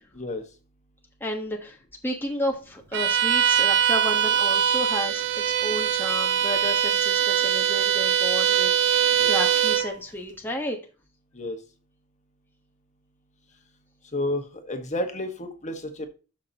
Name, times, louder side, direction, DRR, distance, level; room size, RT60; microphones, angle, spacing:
voice 1, 1.2-10.8, left 1 dB, 10° left, 1.2 m, -32 dB
Bowed string instrument, 2.9-9.9, right 9 dB, 55° right, 0.7 m, -22 dB
voice 2, 14.1-16.1, left 1 dB, 35° left, 1.5 m, -31 dB
12.0 x 6.0 x 2.9 m
head